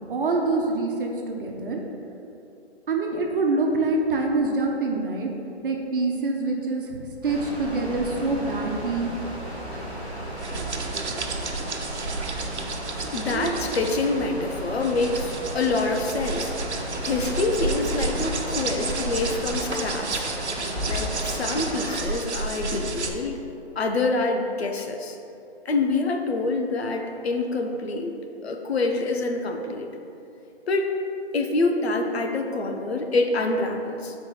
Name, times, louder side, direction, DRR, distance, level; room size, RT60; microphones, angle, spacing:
voice 1, 0.1-1.8 2.9-5.3 5.6-9.1 13.3-13.5, right 3 dB, 50° right, 1 dB, 1.3 m, -25 dB
sound 1, 7.2-22.0, equal, 5° left, 1.7 m, -35 dB
sound 2, 10.4-23.1, right 3 dB, 85° right, 1.1 m, -31 dB
voice 2, 13.1-16.5 17.0-20.2 20.9-23.4 23.7-25.2 25.6-28.1 28.4-29.9 30.7-30.9 31.3-34.1, left 3 dB, 65° left, 3 dB, 1.1 m, -26 dB
6.5 x 4.7 x 5.9 m, 2.7 s
hypercardioid pair, 150°, 33 cm